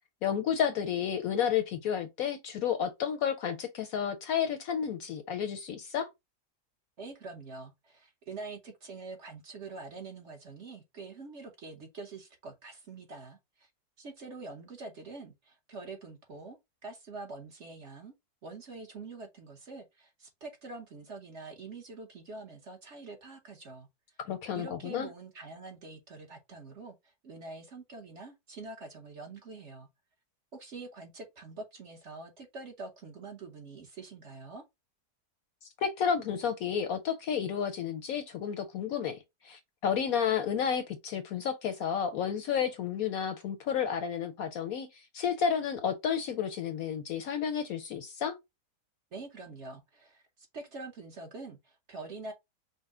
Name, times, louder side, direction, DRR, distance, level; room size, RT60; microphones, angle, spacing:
voice 1, 0.2-6.1 24.2-25.1 35.8-39.2 39.4-48.4, left 8 dB, 70° left, 0.9 m, -31 dB
voice 2, 7.0-13.7 14.0-18.1 18.4-23.9 24.5-29.9 30.5-34.6 49.1-52.3, right 3 dB, 50° right, 1.1 m, -45 dB
5.4 x 2.1 x 3.6 m
omnidirectional pair, 1.8 m